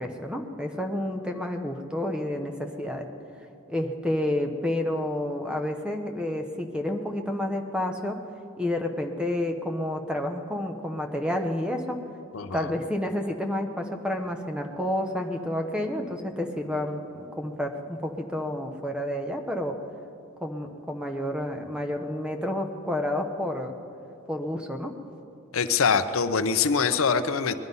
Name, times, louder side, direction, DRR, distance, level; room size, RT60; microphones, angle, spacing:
voice 1, 0.0-3.1 3.7-8.2 8.6-12.0 12.5-19.8 20.4-23.7 24.3-24.9, left 1 dB, 5° right, 4 dB, 0.8 m, -30 dB
voice 2, 12.3-12.7 25.5-27.5, left 5 dB, 75° left, 10 dB, 0.6 m, -24 dB
21.0 x 11.0 x 5.4 m, 2.7 s
head